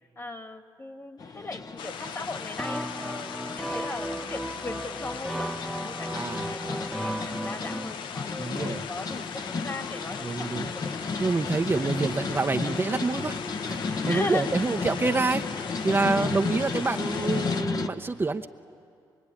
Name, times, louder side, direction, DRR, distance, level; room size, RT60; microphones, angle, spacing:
voice 1, 0.2-11.4 12.1-12.2 14.0-14.5 16.0-16.4, left 2 dB, 30° left, 6 dB, 2.0 m, -38 dB
sound 1, 1.2-17.9, left 4 dB, 50° left, 1.2 m, -34 dB
sound 2, 1.8-17.6, left 7 dB, 85° left, 0.7 m, -39 dB
sound 3, 2.6-7.9, right 1 dB, 5° left, 0.8 m, -35 dB
voice 2, 6.1-6.5 8.4-8.8 10.2-10.7 11.2-13.4 13.7-13.8 14.1-15.5 15.8-18.5, right 3 dB, 30° right, 6 dB, 0.8 m, -27 dB
24.5 x 23.5 x 9.9 m, 2.5 s
cardioid pair, 70°, 8 cm